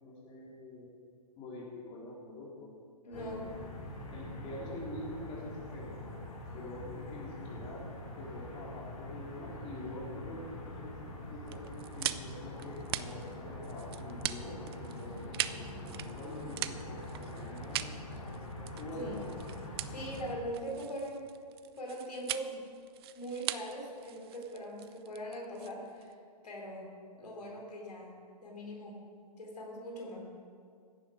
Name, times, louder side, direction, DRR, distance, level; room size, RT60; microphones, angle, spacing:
voice 1, 0.0-0.9 1.4-2.7 3.1-3.5 3.9-6.0 6.5-7.9 8.2-10.4 10.7-11.0 11.3-17.9 18.7-19.3 27.2-27.4, left 1 dB, 25° left, -4 dB, 3.3 m, -45 dB
voice 2, 3.0-3.5 19.0-19.2 19.9-21.3 21.8-22.6 23.1-26.1 26.4-26.9 27.1-28.1 28.4-29.0 29.4-30.2, equal, 80° left, -1 dB, 4.0 m, -41 dB
sound 1, 3.1-20.3, left 1 dB, 60° left, 4.2 m, -44 dB
sound 2, 11.5-26.1, right 13 dB, 40° right, 0.5 m, -41 dB
16.5 x 10.5 x 5.0 m, 2.2 s
hypercardioid pair, 130°, 20 cm